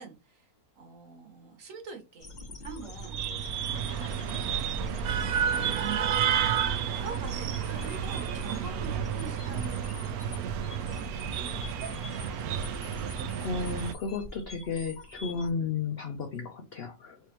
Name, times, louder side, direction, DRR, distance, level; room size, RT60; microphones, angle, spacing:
voice 1, 0.0-2.3 2.6-10.5 10.8-12.0, right 6 dB, 60° right, 4 dB, 1.4 m, -45 dB
sound 1, 2.2-15.5, left 1 dB, 35° left, 1.0 m, -44 dB
sound 2, 2.9-13.9, right 8 dB, 75° right, 1.0 m, -31 dB
voice 2, 13.4-17.2, left 4 dB, 75° left, 6 dB, 0.5 m, -33 dB
3.3 x 3.3 x 2.9 m, 0.27 s
omnidirectional pair, 1.6 m